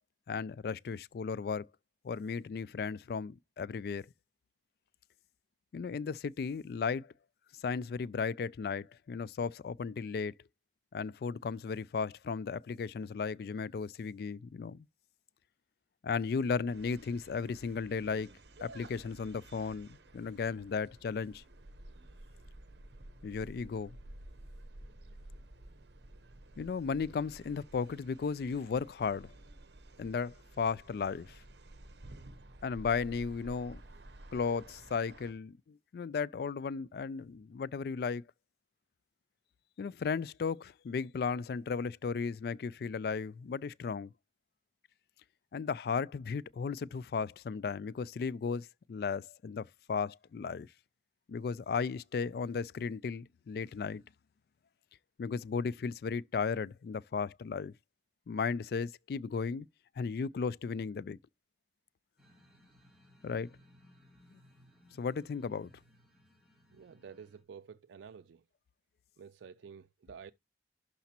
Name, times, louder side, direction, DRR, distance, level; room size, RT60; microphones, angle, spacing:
voice 1, 0.3-1.7 2.0-4.0 5.7-7.1 7.6-10.3 10.9-14.9 16.0-18.3 18.6-21.4 23.2-24.0 26.6-29.3 30.0-31.4 32.6-33.8 34.3-38.2 39.8-44.1 45.5-50.7 51.3-54.0 55.2-57.7 58.3-59.7 60.0-61.2 63.2-63.5 64.3-64.4 65.0-65.7, left 5 dB, 55° left, 0.3 m, -35 dB
sound 1, 16.7-35.3, right 1 dB, 70° right, 1.0 m, -53 dB
sound 2, 62.2-67.4, left 1 dB, 5° right, 2.8 m, -63 dB
voice 2, 66.7-68.4 69.2-70.3, right 6 dB, 85° right, 0.4 m, -50 dB
11.5 x 4.1 x 2.8 m
head